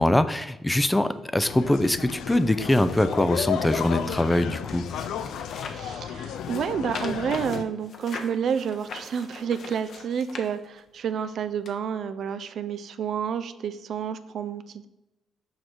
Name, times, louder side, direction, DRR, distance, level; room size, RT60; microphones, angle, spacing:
voice 1, 0.0-4.9, left 1 dB, 10° left, 12 dB, 0.4 m, -23 dB
sound 1, 1.5-7.6, left 8 dB, 80° left, 0.4 m, -33 dB
sound 2, 2.4-5.9 6.3-11.0 11.7-11.8, left 4 dB, 60° left, 1.0 m, -42 dB
voice 2, 5.7-14.9, right 7 dB, 65° right, 11 dB, 0.4 m, -30 dB
6.4 x 5.0 x 4.5 m, 0.95 s
cardioid pair, 90°, 0 cm